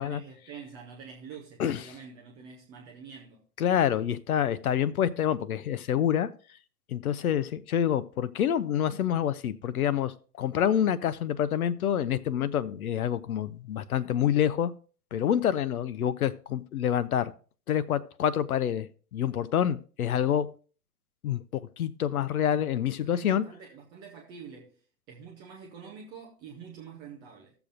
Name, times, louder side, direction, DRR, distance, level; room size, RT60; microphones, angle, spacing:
voice 1, 0.0-3.4 23.0-24.7 25.1-27.5, right 6 dB, 10° right, 0.4 m, -46 dB
voice 2, 3.6-6.3 6.9-14.7 15.1-17.3 17.7-20.5 21.2-23.4, left 9 dB, 60° left, 0.7 m, -27 dB
15.5 x 7.0 x 2.5 m
figure-of-eight pair, 115°, 49 cm